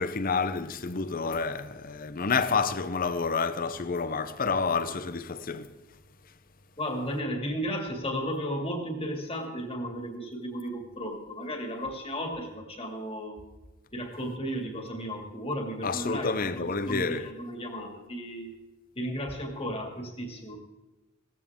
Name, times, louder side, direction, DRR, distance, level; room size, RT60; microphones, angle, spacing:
voice 1, 0.0-5.7 15.8-17.3, left 4 dB, 45° left, 0.7 m, -29 dB
voice 2, 6.8-13.4 13.9-18.5 19.0-20.6, equal, 25° left, 2.3 m, -34 dB
17.0 x 14.5 x 3.7 m
head